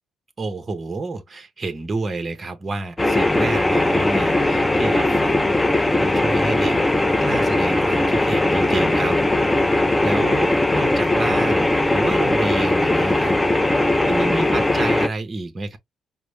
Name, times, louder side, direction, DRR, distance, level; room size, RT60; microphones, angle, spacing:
voice 1, 0.4-6.8 7.2-9.2 10.0-13.4 13.7-15.8, right 3 dB, 30° right, 0.8 m, -29 dB
sound 1, 3.0-15.1, left 2 dB, 15° left, 0.5 m, -19 dB
5.0 x 2.0 x 3.1 m
cardioid pair, 90°, 0 cm